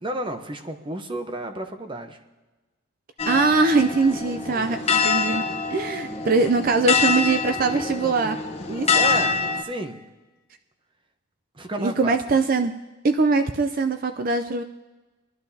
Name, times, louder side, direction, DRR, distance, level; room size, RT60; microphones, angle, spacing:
voice 1, 0.0-2.2 4.5-5.0 8.9-10.0 11.5-12.2, right 1 dB, 25° right, 6 dB, 0.8 m, -32 dB
sound 1, 3.2-9.6, left 5 dB, 30° left, 1.0 m, -25 dB
voice 2, 3.3-5.4 5.7-8.4 8.7-9.0 11.8-12.7 13.0-14.6, right 3 dB, 40° right, 8 dB, 0.4 m, -22 dB
21.0 x 11.5 x 2.8 m, 1.2 s
head